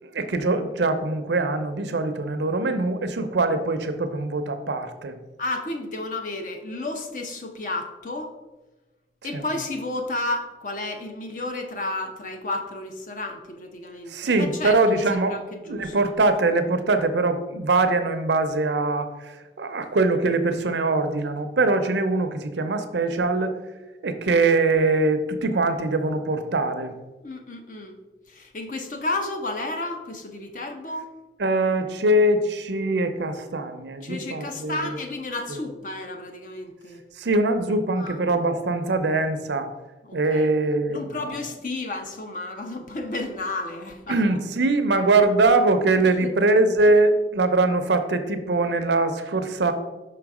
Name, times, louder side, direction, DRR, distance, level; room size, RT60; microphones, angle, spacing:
voice 1, 0.0-5.2 9.3-9.4 14.1-15.4 15.7-23.6 24.0-26.9 31.4-34.9 35.5-35.6 37.2-39.7 40.1-41.3 44.1-49.7, right 2 dB, 80° right, 9 dB, 0.6 m, -22 dB
voice 2, 5.4-8.3 9.2-16.1 27.2-28.0 28.3-31.1 34.0-37.0 38.0-38.2 40.1-40.5 40.9-44.4 46.2-46.3, left 2 dB, 45° left, 4 dB, 0.8 m, -32 dB
5.7 x 3.9 x 4.8 m, 1.1 s
head